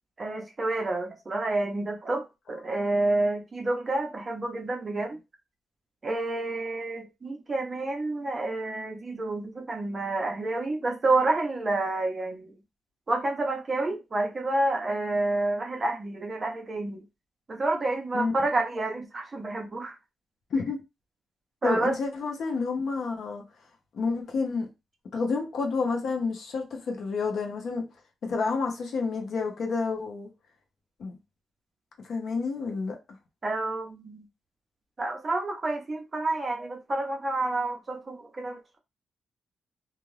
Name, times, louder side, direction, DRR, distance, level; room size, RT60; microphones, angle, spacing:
voice 1, 0.2-5.2 6.0-12.5 13.1-17.0 17.5-20.0 21.6-22.0 33.4-34.3 35.0-38.8, right 2 dB, 30° right, 0.7 m, -29 dB
voice 2, 21.6-23.4 23.9-24.7 25.1-27.8 28.2-30.3 31.0-31.2 32.1-33.0, left 4 dB, 60° left, 0.8 m, -29 dB
2.5 x 2.4 x 3.2 m
cardioid pair, 145°, 0 cm